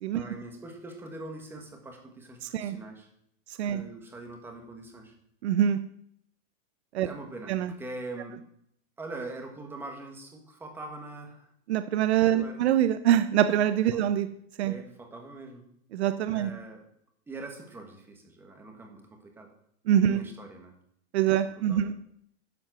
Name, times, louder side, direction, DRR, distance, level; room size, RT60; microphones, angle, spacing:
voice 1, 0.1-3.1 3.7-5.1 7.0-8.4 9.0-11.5 12.3-12.7 14.6-15.6 16.3-16.8 17.3-19.5 20.1-20.7 21.7-21.9, right 2 dB, 5° right, 3 dB, 1.4 m, -43 dB
voice 2, 2.4-2.8 3.6-3.8 5.4-5.8 6.9-7.1 7.5-7.7 11.7-14.3 14.6-14.7 15.9-16.5 19.9-20.2 21.1-21.9, right 10 dB, 80° right, 11 dB, 0.9 m, -24 dB
10.5 x 7.6 x 6.1 m, 0.70 s
supercardioid pair, 180°, 32 cm